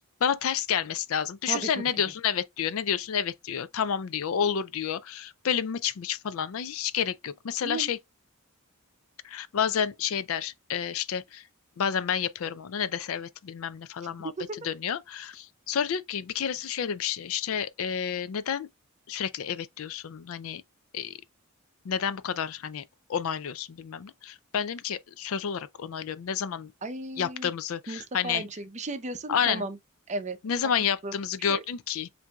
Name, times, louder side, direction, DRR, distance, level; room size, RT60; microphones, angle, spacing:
voice 1, 0.2-8.0 9.2-11.4 11.8-14.3 14.6-18.7 19.1-20.6 20.9-21.1 21.9-22.8 23.1-26.7 27.2-28.4 29.3-29.7 30.4-32.1, left 8 dB, 65° left, 0.4 m, -30 dB
voice 2, 1.5-1.8 7.6-7.9 26.8-27.5 27.9-29.8 30.1-30.4 31.0-31.1 31.5-31.6, right 3 dB, 30° right, 0.6 m, -34 dB
7.3 x 2.6 x 2.3 m
head